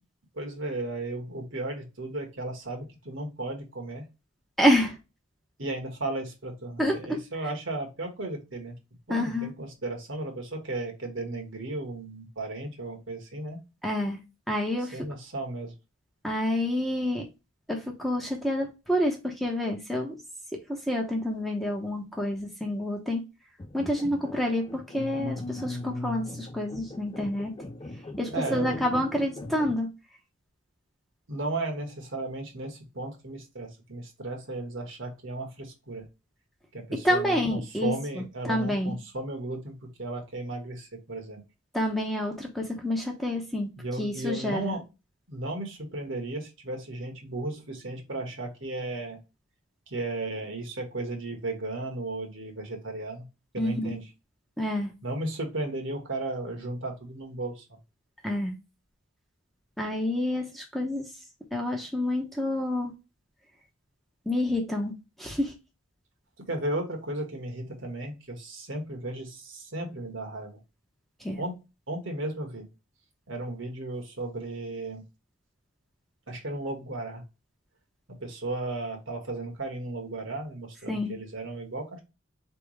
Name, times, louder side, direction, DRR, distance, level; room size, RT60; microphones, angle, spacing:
voice 1, 0.3-4.1 5.6-8.8 9.1-13.6 14.8-15.7 28.3-28.8 31.3-36.1 36.7-41.4 43.8-44.8 45.3-49.2 49.9-53.2 53.5-54.1 55.0-57.8 66.5-70.6 71.4-71.6 71.9-72.7 73.3-75.0 76.3-77.2 78.2-82.0, right 2 dB, 65° right, 1.6 m, -35 dB
voice 2, 4.6-5.0 6.8-7.2 9.1-9.5 13.8-14.2 14.5-15.1 16.2-17.2 17.7-20.2 20.5-23.2 23.7-27.5 28.2-29.9 36.9-38.9 41.7-43.7 44.0-44.8 53.6-53.9 54.6-54.9 58.2-58.5 59.8-61.0 61.5-62.9 64.3-65.5 71.2-71.4 80.9-81.1, left 1 dB, ahead, 0.9 m, -28 dB
sound 1, 23.6-29.7, left 1 dB, 25° left, 0.4 m, -39 dB
4.5 x 3.5 x 3.1 m
head